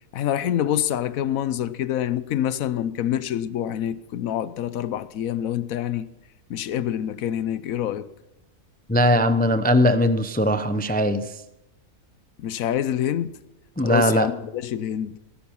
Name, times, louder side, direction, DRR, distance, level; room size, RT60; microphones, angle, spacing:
voice 1, 0.1-6.1 6.5-8.1 12.4-13.4 13.8-15.2, left 10 dB, 75° left, 1.1 m, -26 dB
voice 2, 8.9-11.2 13.8-14.3, equal, 15° left, 0.3 m, -20 dB
17.5 x 10.0 x 5.7 m
omnidirectional pair, 1.5 m